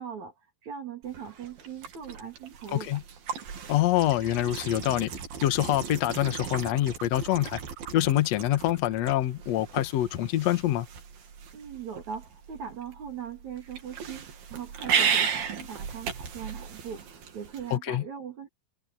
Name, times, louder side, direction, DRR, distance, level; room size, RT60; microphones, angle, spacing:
voice 1, 0.0-3.0 11.5-18.5, right 7 dB, 55° right, 3.8 m, -40 dB
sound 1, 1.0-17.8, right 7 dB, 85° right, 4.6 m, -35 dB
voice 2, 2.7-3.0 3.7-5.1 5.4-7.6 7.9-10.9 17.7-18.0, left 13 dB, 60° left, 2.0 m, -25 dB
omnidirectional pair, 4.1 m